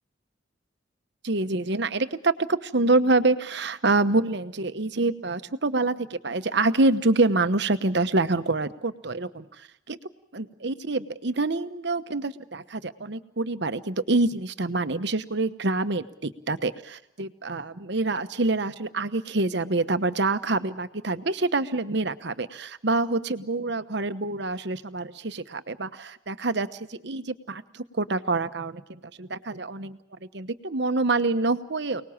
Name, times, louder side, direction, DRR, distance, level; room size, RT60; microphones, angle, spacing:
voice 1, 1.2-10.0 10.3-32.0, right 2 dB, 60° right, 11 dB, 1.1 m, -26 dB
28.5 x 19.5 x 7.3 m, 0.76 s
head